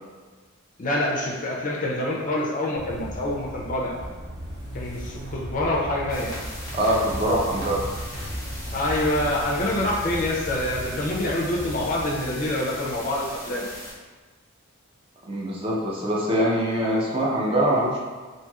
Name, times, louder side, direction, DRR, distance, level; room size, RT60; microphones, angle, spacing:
voice 1, 0.8-3.9 4.7-6.3 8.7-13.7, left 1 dB, 35° left, -3 dB, 0.4 m, -26 dB
sound 1, 2.7-13.3, equal, 55° right, 0.8 m, -36 dB
sound 2, 6.1-13.9, left 1 dB, 15° left, 0.8 m, -39 dB
voice 2, 6.7-7.8 15.3-18.0, right 1 dB, 25° right, -4 dB, 0.4 m, -23 dB
2.9 x 2.6 x 2.3 m, 1.4 s
head